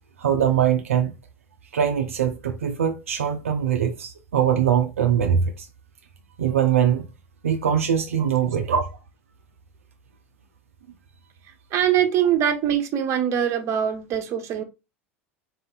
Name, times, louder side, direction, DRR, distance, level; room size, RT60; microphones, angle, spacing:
voice 1, 0.2-1.1 1.7-5.7 6.4-7.1 7.4-8.9, right 8 dB, 80° right, 0.5 m, -22 dB
voice 2, 11.7-14.6, right 9 dB, 45° right, 0.9 m, -22 dB
4.1 x 2.6 x 4.0 m
hypercardioid pair, 80°, 7 cm